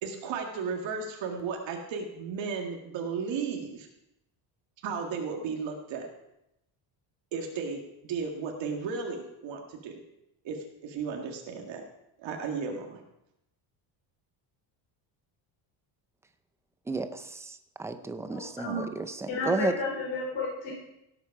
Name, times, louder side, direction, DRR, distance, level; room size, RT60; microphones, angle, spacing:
voice 1, 0.0-3.9 4.8-6.1 7.3-10.0 10.4-11.9 12.2-13.0, right 5 dB, 60° right, 2 dB, 1.9 m, -34 dB
voice 2, 16.9-19.8, right 3 dB, 5° right, 9 dB, 0.4 m, -33 dB
voice 3, 18.3-18.8 19.3-20.7, left 2 dB, 60° left, -6 dB, 5.1 m, -32 dB
17.5 x 8.2 x 4.8 m, 0.85 s
cardioid pair, 175°, 49 cm